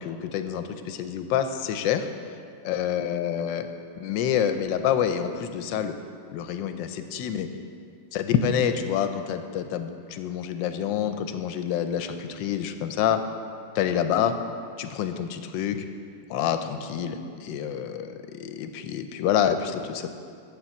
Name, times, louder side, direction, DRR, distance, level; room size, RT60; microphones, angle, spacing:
voice 1, 0.0-2.1 2.6-3.7 4.0-5.9 6.3-7.5 8.1-13.2 13.7-14.3 14.8-15.9 16.3-20.1, left 9 dB, 85° left, 8 dB, 1.3 m, -27 dB
7.6 x 6.8 x 7.0 m, 2.3 s
omnidirectional pair, 2.0 m